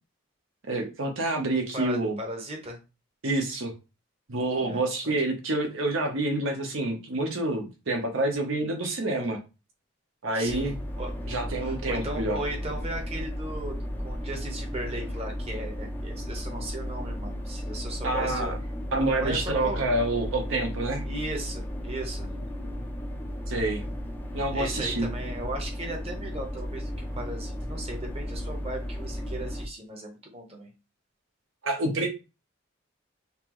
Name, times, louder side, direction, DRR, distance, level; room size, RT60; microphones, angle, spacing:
voice 1, 0.7-2.2 3.2-3.7 4.3-9.4 10.2-10.8 11.3-12.4 18.0-18.6 18.9-21.1 23.5-23.8 24.3-25.1 31.6-32.1, right 2 dB, 70° right, 3 dB, 0.9 m, -28 dB
voice 2, 1.7-2.8 4.6-5.1 9.1-9.3 10.3-11.1 11.6-18.5 19.2-19.8 21.0-22.3 24.5-30.7, right 1 dB, 30° right, 1 dB, 0.9 m, -37 dB
sound 1, 10.5-29.7, equal, 10° left, 0.4 m, -34 dB
5.8 x 2.0 x 3.0 m, 0.30 s
head